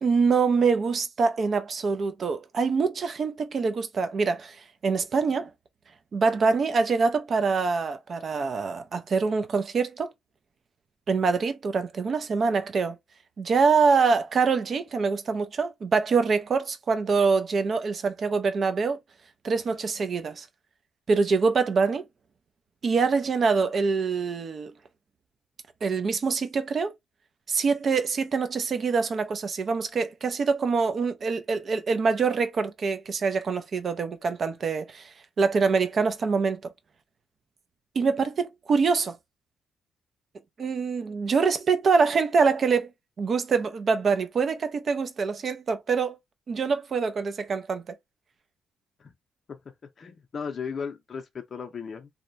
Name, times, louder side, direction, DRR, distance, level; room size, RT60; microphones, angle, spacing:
voice 1, 0.0-5.5 6.1-10.1 11.1-13.0 13.4-19.0 19.4-20.5 21.1-22.1 22.8-24.7 25.8-26.9 27.5-36.6 37.9-39.2 40.6-42.9 43.2-46.2 46.5-47.9, right 4 dB, 45° right, 0.6 m, -25 dB
voice 2, 50.0-52.1, left 6 dB, 45° left, 0.5 m, -36 dB
2.8 x 2.1 x 2.6 m
cardioid pair, 90°, 0 cm